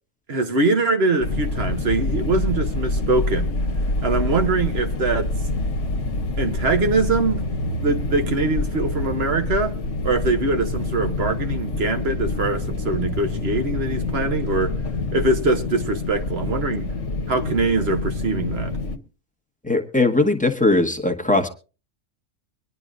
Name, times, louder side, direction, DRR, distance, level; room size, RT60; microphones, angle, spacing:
voice 1, 0.3-3.5 4.0-5.3 6.4-7.4 7.8-9.8 10.0-14.7 15.1-16.9 17.3-18.8, right 3 dB, 55° right, 1.2 m, -23 dB
sound 1, 1.2-19.0, left 2 dB, 70° left, 1.3 m, -26 dB
voice 2, 19.6-21.5, left 2 dB, 5° left, 1.0 m, -19 dB
24.0 x 10.5 x 2.5 m
omnidirectional pair, 1.3 m